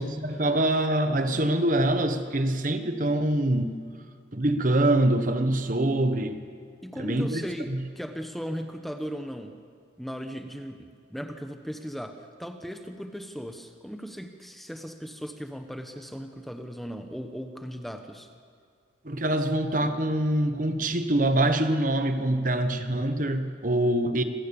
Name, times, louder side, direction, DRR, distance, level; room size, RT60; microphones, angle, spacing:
voice 1, 0.0-3.8 4.3-6.4 7.0-7.4 7.7-7.8 19.0-24.2, right 1 dB, 45° right, 8 dB, 1.2 m, -24 dB
voice 2, 6.8-9.5 10.0-18.3, equal, ahead, 6 dB, 1.0 m, -37 dB
27.0 x 17.0 x 7.0 m, 2.1 s
head